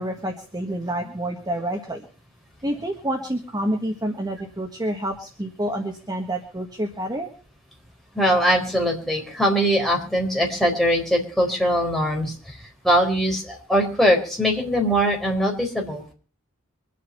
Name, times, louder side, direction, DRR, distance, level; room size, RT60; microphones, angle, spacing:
voice 1, 0.0-2.1 2.6-7.3, right 1 dB, 20° right, 2 dB, 1.6 m, -28 dB
voice 2, 8.1-12.6 12.8-16.0, equal, ahead, -1 dB, 4.2 m, -21 dB
24.5 x 8.6 x 5.7 m, 0.39 s
head